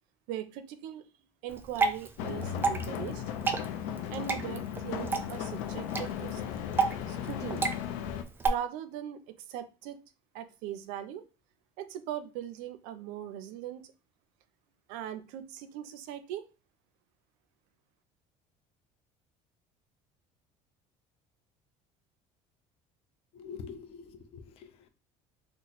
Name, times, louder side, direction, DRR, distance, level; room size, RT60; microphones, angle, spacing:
voice 1, 0.3-1.0 1.4-3.2 4.1-6.4 7.1-7.7 8.5-9.2 9.5-10.0 10.3-11.2 11.8-13.9 14.9-16.5, right 11 dB, 80° right, 11 dB, 0.5 m, -40 dB
Water / Drip, 1.5-8.5, right 4 dB, 15° right, 0.4 m, -32 dB
sound 1, 2.2-8.2, left 9 dB, 90° left, 0.5 m, -36 dB
voice 2, 23.3-24.9, left 6 dB, 50° left, 8 dB, 0.6 m, -45 dB
3.0 x 2.1 x 4.0 m, 0.31 s
cardioid pair, 150°, 13 cm